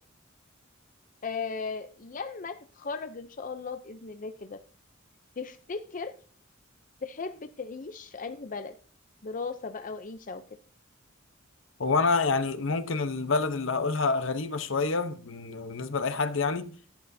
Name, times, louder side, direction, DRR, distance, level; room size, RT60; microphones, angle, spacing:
voice 1, 1.2-4.6 5.4-6.2 7.0-8.7 9.2-10.4, left 4 dB, 40° left, 0.6 m, -37 dB
voice 2, 11.8-16.7, left 4 dB, 70° left, 0.9 m, -27 dB
11.5 x 11.0 x 2.7 m
head